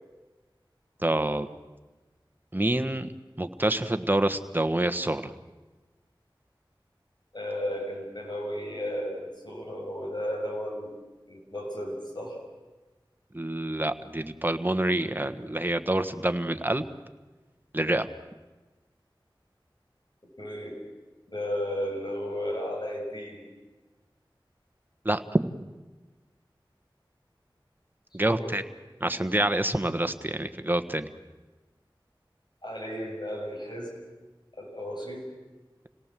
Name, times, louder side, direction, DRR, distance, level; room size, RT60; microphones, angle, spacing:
voice 1, 1.0-1.5 2.5-3.1 3.4-5.3 13.3-16.9 17.7-18.1 25.0-25.4 28.1-28.6 29.0-31.1, right 1 dB, 20° right, 9 dB, 1.3 m, -27 dB
voice 2, 7.3-10.9 11.3-12.4 20.4-20.8 21.3-23.5 28.3-28.6 32.6-34.0 34.6-35.3, equal, 55° left, 0 dB, 7.1 m, -34 dB
27.5 x 18.0 x 7.6 m, 1.2 s
wide cardioid pair, 40°, 9 cm